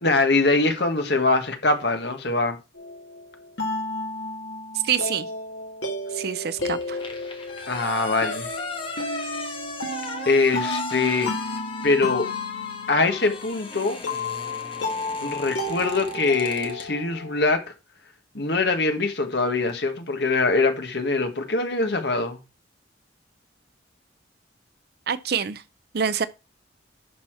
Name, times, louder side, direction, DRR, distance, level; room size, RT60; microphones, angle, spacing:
voice 1, 0.0-2.6 7.7-8.5 9.2-9.5 10.2-11.3 11.8-12.3 12.9-14.0 15.2-17.6 18.3-22.4, left 3 dB, 60° left, 1.4 m, -23 dB
sound 1, 2.7-17.5, left 2 dB, 75° left, 2.0 m, -32 dB
voice 2, 4.8-5.3 6.1-7.0 25.1-25.6 25.9-26.3, right 7 dB, 55° right, 0.5 m, -26 dB
sound 2, 6.6-16.9, left 3 dB, 25° left, 1.3 m, -38 dB
11.0 x 4.2 x 4.4 m
head